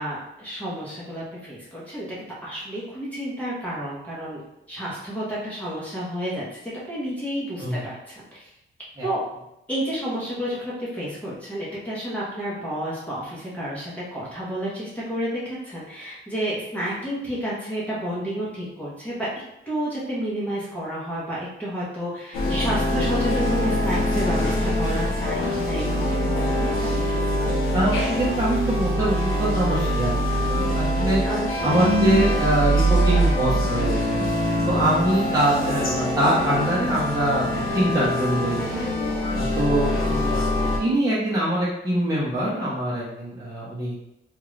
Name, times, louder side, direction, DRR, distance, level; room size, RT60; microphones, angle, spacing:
voice 1, 0.0-2.1 2.4-4.4 4.7-6.6 6.9-8.5 9.0-9.2 9.7-19.3 19.7-26.9 31.2-31.7, equal, 5° left, -8 dB, 1.0 m, -30 dB
sound 1, 22.3-40.8, equal, 90° left, 0.8 m, -23 dB
voice 2, 27.7-31.2 31.6-34.2 34.7-38.6 39.3-40.5 40.8-43.9, right 1 dB, 15° right, -8 dB, 0.9 m, -24 dB
2.8 x 2.5 x 3.2 m, 0.85 s
cardioid pair, 115°, 21 cm